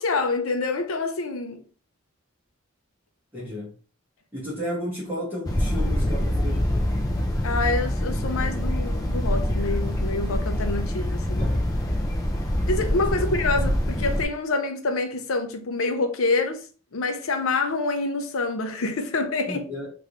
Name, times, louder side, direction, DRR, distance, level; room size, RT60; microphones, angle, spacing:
voice 1, 0.0-1.6 7.4-11.5 12.6-19.7, left 3 dB, 75° left, 0.5 m, -27 dB
voice 2, 3.3-3.7 4.3-6.6 11.4-11.6 19.5-19.9, equal, 10° right, 1.2 m, -33 dB
sound 1, 5.4-14.3, left 1 dB, 15° left, 0.4 m, -25 dB
3.4 x 2.5 x 2.8 m
head